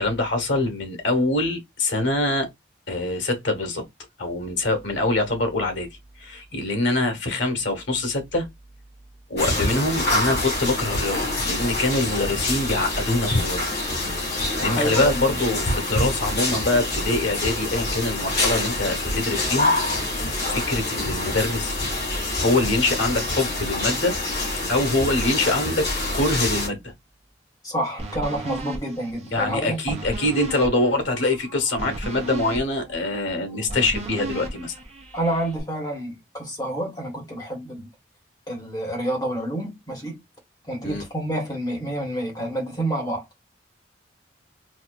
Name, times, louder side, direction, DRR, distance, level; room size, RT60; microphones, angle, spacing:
voice 1, 0.0-2.5 2.9-3.8 4.2-5.9 6.2-8.5 9.3-13.6 14.6-21.7 22.4-24.1 24.7-25.9 26.1-26.8 29.3-34.7 40.8-41.0, left 2 dB, 85° left, 1.1 m, -24 dB
sound 1, 9.4-26.7, left 2 dB, 55° left, 2.4 m, -26 dB
voice 2, 14.7-15.2 27.6-30.0 35.1-37.9 38.5-40.2 40.6-43.2, right 1 dB, 20° left, 1.4 m, -28 dB
sound 2, 28.0-35.6, right 2 dB, 35° right, 0.9 m, -35 dB
4.1 x 2.3 x 2.4 m
head